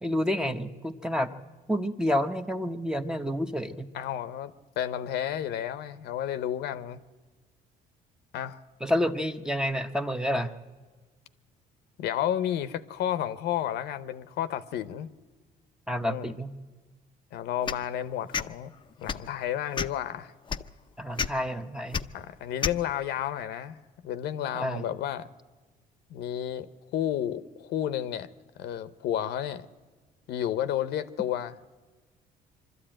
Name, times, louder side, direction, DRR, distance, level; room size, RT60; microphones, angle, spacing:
voice 1, 0.0-1.3 1.7-3.9 8.8-10.5 15.9-16.5 21.0-22.0 24.5-24.8, equal, 5° right, 0.9 m, -29 dB
voice 2, 3.9-4.5 4.8-7.0 8.3-8.6 12.0-15.1 16.0-16.2 17.3-18.7 19.0-20.3 22.1-23.8 24.0-25.3 26.1-28.3 28.6-29.7 30.3-31.5, left 11 dB, 75° left, 0.9 m, -31 dB
sound 1, 17.6-17.8 18.3-18.5 19.0-19.3 19.7-20.0 20.5-20.6 21.2-21.3 21.9-22.0 22.6-22.8, left 6 dB, 30° left, 0.6 m, -29 dB
23.5 x 13.0 x 8.9 m
cardioid pair, 110°, 17 cm